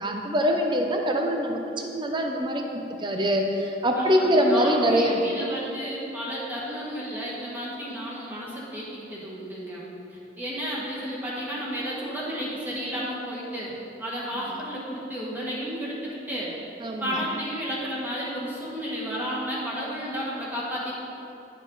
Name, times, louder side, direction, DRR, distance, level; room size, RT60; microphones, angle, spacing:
voice 1, 0.0-5.2 14.3-14.5 16.8-17.2, equal, 25° right, 2 dB, 0.7 m, -24 dB
voice 2, 3.9-9.8 10.1-13.7 14.0-16.5 17.0-20.9, equal, 10° right, -7 dB, 1.6 m, -32 dB
10.5 x 5.3 x 4.0 m, 2.8 s
head